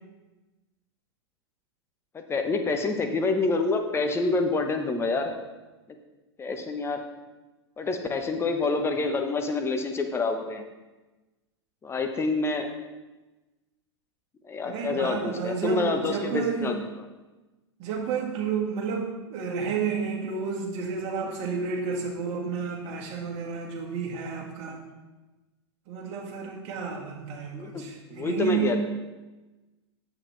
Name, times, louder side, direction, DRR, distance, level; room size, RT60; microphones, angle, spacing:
voice 1, 2.1-5.4 6.4-7.0 7.8-10.6 11.8-12.7 14.4-16.8 27.5-27.8 28.1-28.8, left 3 dB, 15° left, 5 dB, 0.9 m, -27 dB
voice 2, 14.6-16.8 17.8-24.8 25.9-28.8, right 6 dB, 45° right, -1 dB, 1.9 m, -31 dB
8.3 x 7.4 x 3.3 m, 1.1 s
hypercardioid pair, 100°, 15 cm